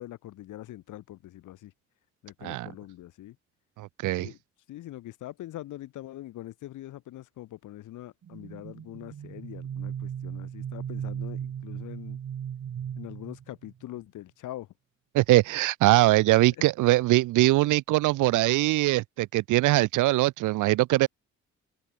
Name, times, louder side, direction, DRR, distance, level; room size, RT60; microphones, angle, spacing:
voice 1, 0.0-1.7 2.2-3.4 4.2-4.4 4.7-12.2 13.0-14.7 16.6-16.7, left 14 dB, 85° left, 4.6 m, -43 dB
voice 2, 3.8-4.3 15.1-21.1, right 18 dB, 80° right, 0.6 m, -22 dB
sound 1, 8.2-13.8, right 9 dB, 55° right, 3.0 m, -37 dB
cardioid pair, 90°, 30 cm